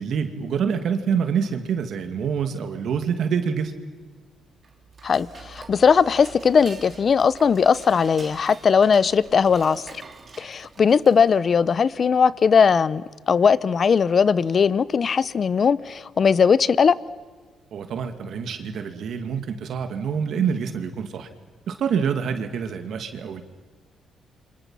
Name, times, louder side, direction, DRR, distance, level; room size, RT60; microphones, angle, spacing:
voice 1, 0.0-3.7 17.7-21.3 21.7-23.4, right 7 dB, 65° right, 2.4 m, -26 dB
Dishes pots and pans / Cutlery silverware, 4.6-11.4, right 5 dB, 40° right, 2.8 m, -46 dB
voice 2, 5.0-9.8 10.4-13.0 13.3-17.0, left 6 dB, 45° left, 0.8 m, -19 dB
29.0 x 26.0 x 5.7 m
cardioid pair, 90°, 0 cm